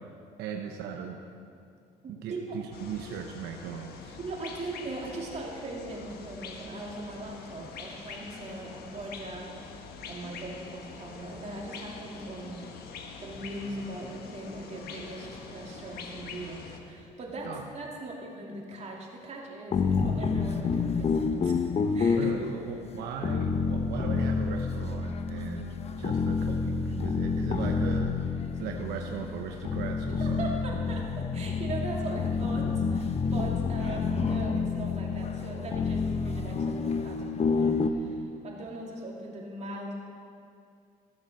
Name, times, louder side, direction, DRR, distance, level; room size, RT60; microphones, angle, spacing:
voice 1, 0.4-1.2 2.1-4.2 17.4-17.6 22.2-28.2 28.6-30.6, right 7 dB, 85° right, 3 dB, 0.9 m, -38 dB
voice 2, 2.0-2.5 4.2-12.7 13.2-22.3 30.2-39.9, right 2 dB, 40° right, -2 dB, 2.7 m, -40 dB
sound 1, 2.7-16.8, left 5 dB, 70° left, 1.3 m, -44 dB
sound 2, 19.7-37.9, left 5 dB, 40° left, 0.7 m, -29 dB
15.0 x 7.2 x 6.6 m, 2.4 s
cardioid pair, 110°, 17 cm